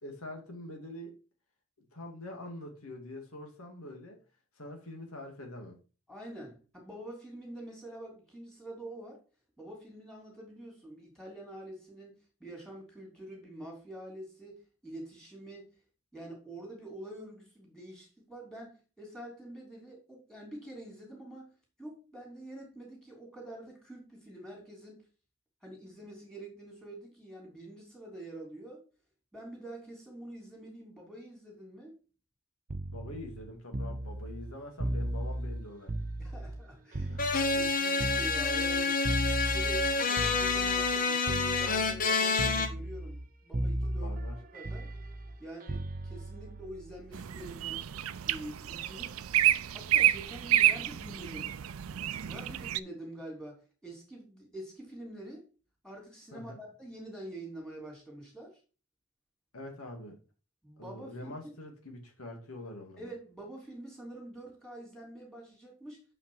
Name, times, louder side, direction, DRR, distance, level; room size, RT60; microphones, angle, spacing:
voice 1, 0.0-1.2 1.9-4.2 4.6-5.7 32.9-35.9 37.1-37.3 43.9-44.4 56.3-56.6 59.5-60.2 60.8-63.0, left 1 dB, 85° left, 2.5 m, -44 dB
voice 2, 6.1-9.2 9.6-15.7 16.1-21.5 21.8-25.0 25.6-28.8 29.3-31.9 36.2-37.2 37.5-39.0 39.5-44.1 44.5-44.9 45.4-47.8 48.3-49.2 49.7-51.6 52.2-55.4 55.8-58.6 60.6-61.3 63.0-66.0, right 1 dB, 5° left, 3.1 m, -46 dB
sound 1, 32.7-36.6 36.9-41.0 41.3-42.1 42.4-43.3 43.5-47.5 48.7-49.0, right 1 dB, 40° right, 0.8 m, -36 dB
sound 2, 37.2-42.7, left 4 dB, 40° left, 1.0 m, -28 dB
sound 3, 47.1-52.8, right 12 dB, 75° right, 0.5 m, -29 dB
6.7 x 5.9 x 4.7 m
head